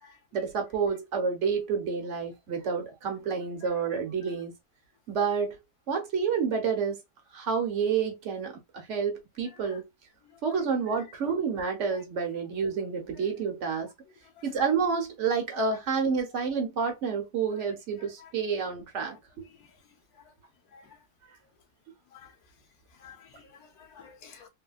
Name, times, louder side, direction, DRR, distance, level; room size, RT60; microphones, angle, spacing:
voice 1, 0.3-4.5 5.1-5.6 5.9-7.0 7.3-9.8 10.4-13.9 14.4-19.2, right 5 dB, 60° right, 1.1 m, -29 dB
voice 2, 23.0-24.5, left 7 dB, 85° left, 1.3 m, -52 dB
3.4 x 2.2 x 2.3 m
omnidirectional pair, 1.6 m